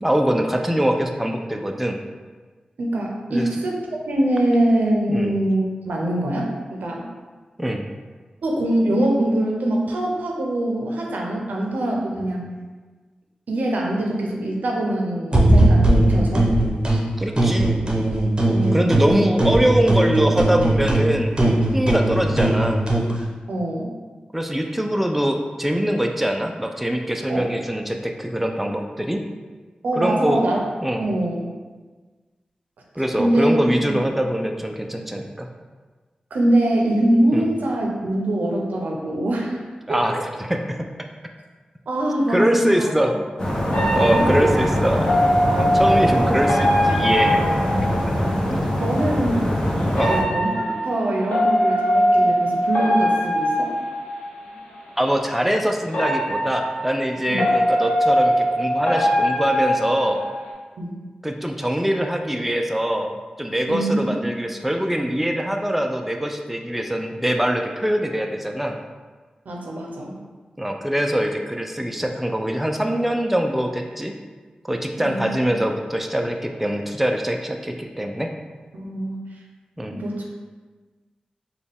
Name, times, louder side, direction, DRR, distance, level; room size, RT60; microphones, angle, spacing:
voice 1, 0.0-2.0 3.3-3.5 5.1-5.3 7.6-7.9 17.2-17.8 18.7-21.4 21.7-22.9 24.3-29.2 30.0-30.4 30.8-31.1 33.0-35.5 37.3-37.5 39.9-40.2 40.5-40.9 42.3-43.1 43.7-45.1 45.5-47.4 48.5-48.7 49.9-50.2 55.0-60.2 61.2-63.1 63.4-68.8 70.6-74.1 74.7-78.3 79.8-80.0, equal, 5° right, 3 dB, 0.4 m, -23 dB
voice 2, 2.8-7.1 8.4-12.4 13.5-16.5 18.5-19.3 23.5-23.9 27.3-27.4 29.8-30.6 31.0-31.4 33.2-33.5 33.9-34.0 36.3-39.6 39.9-40.1 41.9-44.9 48.8-49.5 50.0-50.5 50.8-53.7 57.3-57.4 60.8-60.9 63.7-64.3 69.5-70.1 75.0-75.5 78.7-79.2 80.0-80.2, right 1 dB, 85° right, -1 dB, 0.6 m, -23 dB
sound 1, 15.3-17.0 17.4-19.1 19.4-23.1, right 1 dB, 35° right, 0.8 m, -18 dB
sound 2, 43.4-50.2, equal, 25° left, 0.9 m, -23 dB
sound 3, 43.7-48.3 49.9-54.5 55.9-60.5, equal, 80° left, 1.0 m, -22 dB
4.0 x 2.3 x 3.5 m, 1.4 s
cardioid pair, 40°, 3 cm